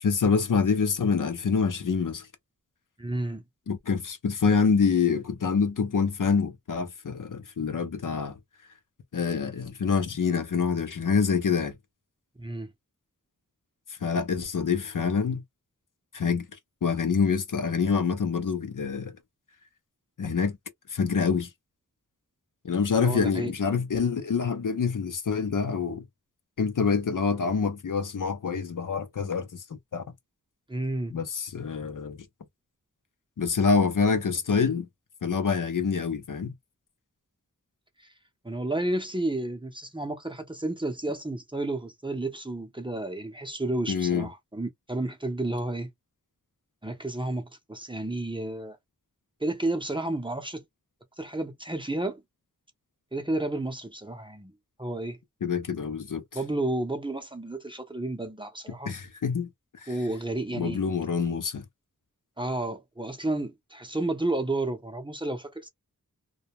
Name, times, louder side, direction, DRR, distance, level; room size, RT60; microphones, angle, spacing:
voice 1, 0.0-2.3 3.7-8.3 9.1-11.8 14.0-15.4 16.1-16.5 16.8-19.1 20.2-20.6 20.9-21.5 22.6-26.0 26.6-29.6 29.9-30.0 31.1-32.2 33.4-34.9 35.2-36.5 43.9-44.3 55.4-56.2 58.9-59.5 59.8-59.9 60.6-61.6, left 5 dB, 65° left, 0.6 m, -26 dB
voice 2, 3.0-3.4 12.4-12.7 23.0-23.5 30.7-31.1 38.4-45.9 46.8-48.8 49.4-50.6 51.2-52.2 53.1-54.5 54.8-55.2 56.3-58.9 59.9-60.8 62.4-65.7, right 2 dB, 15° right, 0.6 m, -31 dB
2.2 x 2.1 x 2.8 m
wide cardioid pair, 55°, 34 cm